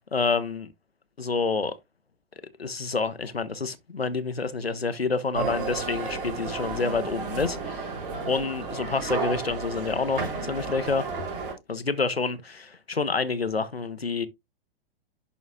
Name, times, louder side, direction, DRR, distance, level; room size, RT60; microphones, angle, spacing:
voice 1, 0.1-0.7 1.2-1.7 2.6-7.9 8.3-11.0 11.7-14.3, left 4 dB, 85° left, 0.8 m, -28 dB
sound 1, 5.3-11.5, right 4 dB, 60° right, 3.7 m, -32 dB
11.0 x 4.0 x 2.4 m
figure-of-eight pair, 105°, 30 cm